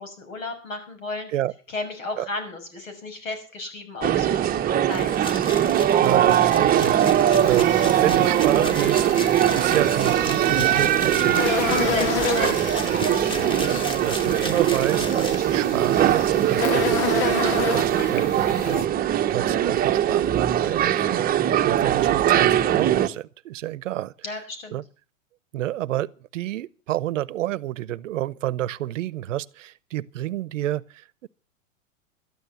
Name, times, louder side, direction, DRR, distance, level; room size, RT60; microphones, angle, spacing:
voice 1, 0.0-1.3 1.7-5.1 11.9-13.4 24.2-24.8, left 2 dB, 80° left, 6.3 m, -34 dB
sound 1, 4.0-23.1, right 11 dB, 25° right, 0.9 m, -21 dB
sound 2, 4.9-16.1, left 1 dB, 15° left, 2.4 m, -36 dB
voice 2, 5.9-12.0 13.7-24.1 24.7-24.8 25.5-31.3, right 13 dB, 70° right, 0.9 m, -30 dB
sound 3, 7.3-18.8, left 9 dB, 60° left, 1.3 m, -31 dB
13.0 x 11.0 x 7.0 m
hypercardioid pair, 115°, 39 cm